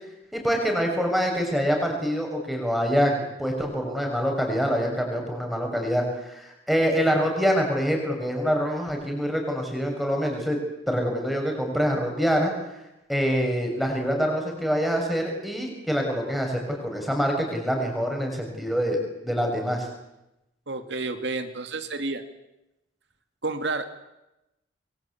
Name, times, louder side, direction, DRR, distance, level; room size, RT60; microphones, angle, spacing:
voice 1, 0.3-10.6 10.9-12.5 13.1-19.0 19.2-19.9, equal, ahead, 2 dB, 6.5 m, -25 dB
voice 2, 20.7-22.2 23.4-23.9, right 3 dB, 65° right, 7 dB, 2.3 m, -30 dB
27.0 x 23.0 x 8.6 m, 0.93 s
head